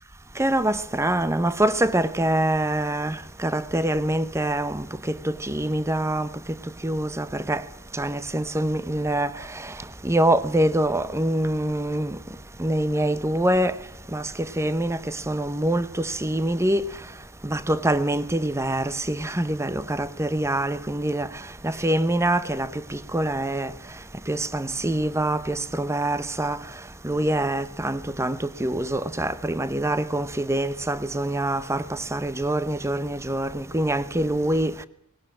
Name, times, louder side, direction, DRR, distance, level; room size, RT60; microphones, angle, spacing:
voice 1, 0.4-6.3 6.8-7.6 7.9-9.3 10.0-12.2 12.6-13.7 14.1-16.8 17.4-21.3 21.6-23.7 24.3-26.6 27.0-34.7, right 1 dB, 10° right, 0.8 m, -25 dB
20.0 x 18.0 x 8.6 m
head